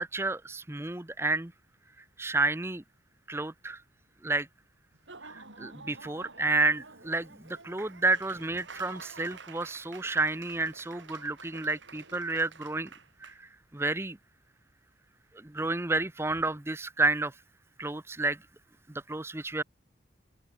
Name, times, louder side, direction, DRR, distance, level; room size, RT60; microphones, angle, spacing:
voice 1, 0.0-1.5 2.2-2.8 3.3-3.8 4.2-4.5 5.2-12.9 13.2-14.2 15.3-17.3 17.8-18.4 18.9-19.6, right 2 dB, 15° right, 0.7 m, -30 dB
Laughter / Applause, 4.9-13.4, right 4 dB, 80° right, 6.5 m, -49 dB
open air
head